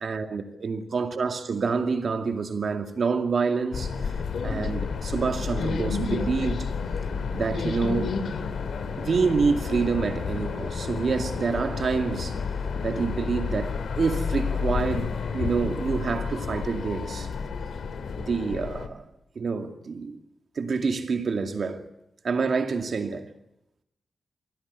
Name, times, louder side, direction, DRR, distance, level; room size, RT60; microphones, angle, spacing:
voice 1, 0.0-3.9 4.4-6.7 7.3-8.1 9.0-12.4 12.8-17.3 18.2-19.0 19.4-20.2 20.6-21.8 22.2-23.3, right 4 dB, 65° right, 2.3 m, -27 dB
sound 1, 3.7-18.9, left 5 dB, 85° left, 2.4 m, -30 dB
24.0 x 16.5 x 9.7 m
cardioid pair, 65°, 0 cm